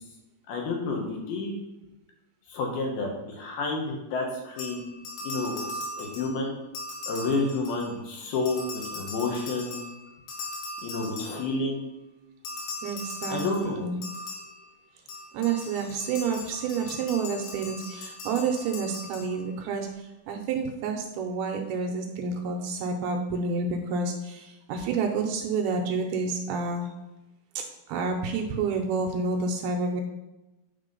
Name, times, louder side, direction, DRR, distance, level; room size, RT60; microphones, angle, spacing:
voice 1, 0.5-1.6 2.5-4.8 5.2-6.5 7.1-9.8 10.8-11.8 13.3-13.8, left 3 dB, 70° left, 0 dB, 2.9 m, -30 dB
sound 1, 4.6-8.0 8.3-11.8 12.5-19.7, left 2 dB, 85° left, 3.8 m, -39 dB
voice 2, 12.8-14.0 15.3-19.9 20.3-26.9 27.6-30.0, right 4 dB, 75° right, 3 dB, 2.5 m, -29 dB
8.9 x 4.3 x 5.3 m, 1.0 s
omnidirectional pair, 4.9 m